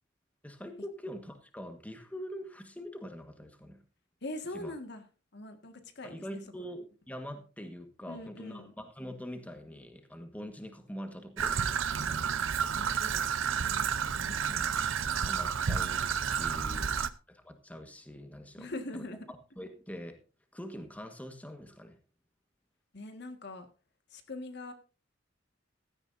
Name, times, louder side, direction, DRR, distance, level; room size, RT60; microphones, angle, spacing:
voice 1, 0.4-3.8 4.5-4.7 6.0-11.6 15.2-19.0 19.6-20.2 20.5-22.0, equal, 10° left, 6 dB, 1.5 m, -44 dB
voice 2, 4.2-5.0 5.3-6.2 8.1-8.7 11.5-12.3 12.8-13.4 13.6-14.7 15.0-15.1 15.4-15.5 16.6-17.1 18.6-19.3 22.9-23.7 24.1-24.7, left 2 dB, 60° left, 7 dB, 1.8 m, -43 dB
Traffic noise roadway noise / Trickle dribble, 11.4-17.1, right 7 dB, 85° right, 0.7 m, -30 dB
16.0 x 13.0 x 2.6 m, 0.32 s
head